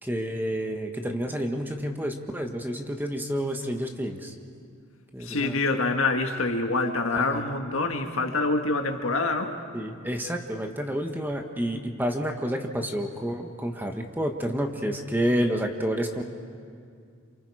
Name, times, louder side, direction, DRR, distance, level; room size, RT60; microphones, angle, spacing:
voice 1, 0.0-4.3 5.1-5.6 7.1-7.4 9.7-16.2, equal, 10° right, 4 dB, 1.3 m, -29 dB
voice 2, 5.2-9.6, left 3 dB, 80° left, 4 dB, 1.7 m, -26 dB
28.0 x 28.0 x 4.9 m, 2.3 s
head